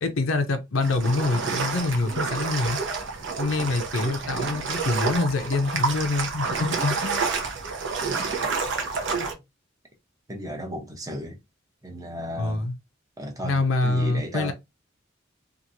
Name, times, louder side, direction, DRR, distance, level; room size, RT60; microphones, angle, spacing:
voice 1, 0.0-2.8 3.4-7.2 12.4-12.7 13.4-14.5, left 3 dB, 75° left, 0.6 m, -25 dB
sound 1, 0.8-9.3, right 4 dB, 60° right, 0.7 m, -29 dB
voice 2, 4.2-4.7 9.1-9.3 10.3-11.4 11.8-12.7 13.2-14.5, equal, 15° right, 0.7 m, -35 dB
2.9 x 2.5 x 2.6 m
head